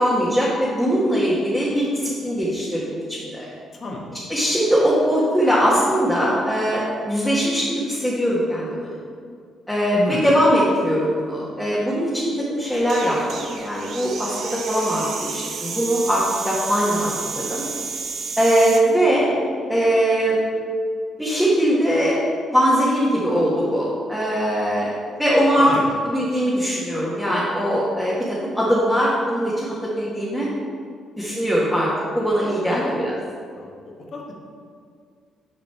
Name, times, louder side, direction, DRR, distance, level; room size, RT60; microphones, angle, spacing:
voice 1, 0.0-3.5 4.3-8.9 9.7-14.4 14.7-17.6 18.4-19.3 19.7-20.4 21.2-22.2 22.5-25.7 26.1-28.1 28.5-30.5 31.2-31.9 32.1-33.1, equal, ahead, -8 dB, 1.5 m, -21 dB
voice 2, 3.7-4.2 9.9-10.3 25.6-25.8 32.7-32.9 33.6-34.3, left 2 dB, 50° left, -1 dB, 1.2 m, -30 dB
sound 1, 12.7-18.8, right 5 dB, 65° right, 0.7 m, -31 dB
6.6 x 5.2 x 4.4 m, 2.1 s
cardioid pair, 90°, 0 cm